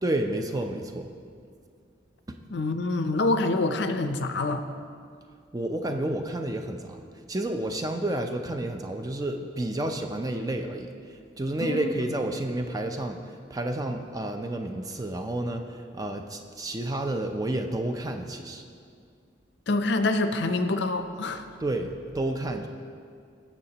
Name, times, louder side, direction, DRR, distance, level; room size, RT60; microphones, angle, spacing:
voice 1, 0.0-1.1 2.3-2.4 5.5-7.0 7.3-10.9 11.4-13.2 13.5-15.6 15.9-18.6 21.6-22.7, right 1 dB, 20° right, 5 dB, 0.4 m, -30 dB
voice 2, 2.5-4.7 11.6-11.9 19.7-21.4, left 2 dB, 65° left, 8 dB, 0.5 m, -26 dB
17.5 x 7.1 x 2.9 m, 2.3 s
head